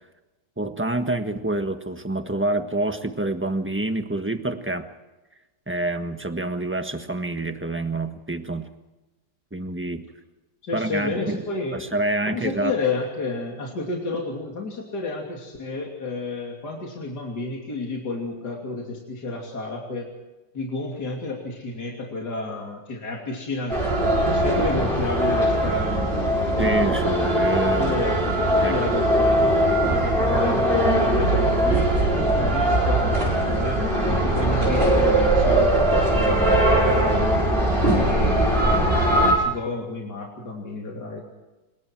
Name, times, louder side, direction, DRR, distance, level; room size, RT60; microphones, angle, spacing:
voice 1, 0.6-4.9 5.7-8.7 9.5-10.0 10.7-11.5 11.7-12.7 26.6-27.9 28.6-28.7, right 2 dB, 10° right, 7 dB, 1.3 m, -27 dB
voice 2, 10.6-11.8 12.3-20.1 20.5-23.8 24.2-26.1 27.8-37.2 37.9-41.2, left 2 dB, 70° left, -1 dB, 3.6 m, -31 dB
sound 1, 23.7-39.3, right 1 dB, 35° right, 6.9 m, -20 dB
26.0 x 22.5 x 4.6 m, 1.1 s
omnidirectional pair, 1.8 m